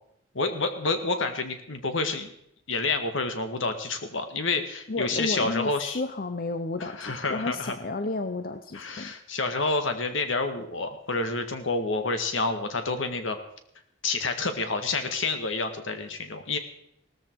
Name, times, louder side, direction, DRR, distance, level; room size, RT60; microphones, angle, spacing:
voice 1, 0.3-2.3 2.7-6.0 7.0-7.7 8.7-13.4 14.0-16.6, left 3 dB, 70° left, 7 dB, 1.8 m, -28 dB
voice 2, 4.9-9.1, left 2 dB, 45° left, 8 dB, 0.7 m, -32 dB
17.5 x 13.5 x 4.7 m, 0.75 s
head